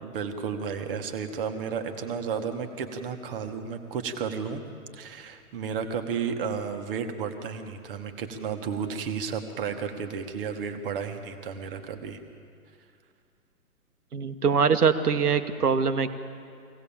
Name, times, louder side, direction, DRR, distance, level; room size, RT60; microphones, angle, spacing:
voice 1, 0.0-4.6 4.9-12.2, right 6 dB, 35° right, 6 dB, 1.7 m, -32 dB
voice 2, 14.1-16.1, right 6 dB, 75° right, 9 dB, 1.6 m, -23 dB
23.5 x 18.0 x 7.3 m, 2.3 s
figure-of-eight pair, 140°, 46 cm